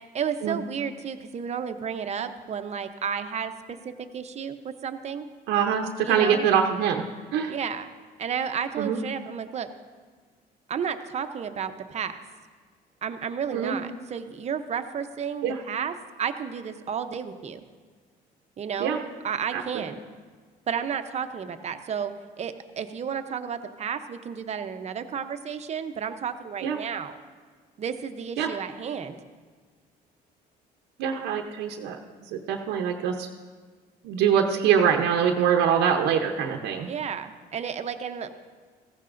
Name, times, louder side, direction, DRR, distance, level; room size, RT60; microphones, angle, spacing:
voice 1, 0.1-5.3 6.0-6.4 7.5-7.9 8.2-9.7 10.7-12.2 13.0-17.6 18.6-19.0 19.2-20.0 20.7-27.1 27.8-29.2 36.9-38.3, right 7 dB, 40° right, 9 dB, 0.8 m, -32 dB
voice 2, 5.5-7.0 7.3-7.5 8.8-9.0 13.5-13.8 15.4-15.6 18.8-19.0 19.5-19.8 26.6-26.8 28.4-28.5 31.0-33.3 34.0-36.9, right 8 dB, 90° right, 2 dB, 0.8 m, -24 dB
15.5 x 15.0 x 2.6 m, 1.5 s
cardioid pair, 110°, 17 cm